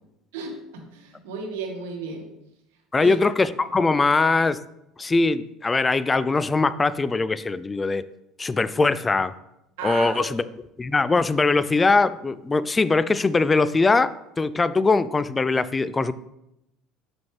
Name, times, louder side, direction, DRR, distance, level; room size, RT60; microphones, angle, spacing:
voice 1, 0.3-2.3 2.9-3.2 9.8-10.3, right 3 dB, 85° right, 1 dB, 1.6 m, -34 dB
voice 2, 2.9-4.6 5.0-8.0 8.4-9.3 9.8-10.4 10.8-14.1 14.4-16.1, left 3 dB, 20° left, 15 dB, 0.4 m, -21 dB
7.0 x 6.1 x 3.3 m, 0.84 s
supercardioid pair, 90°, 0 cm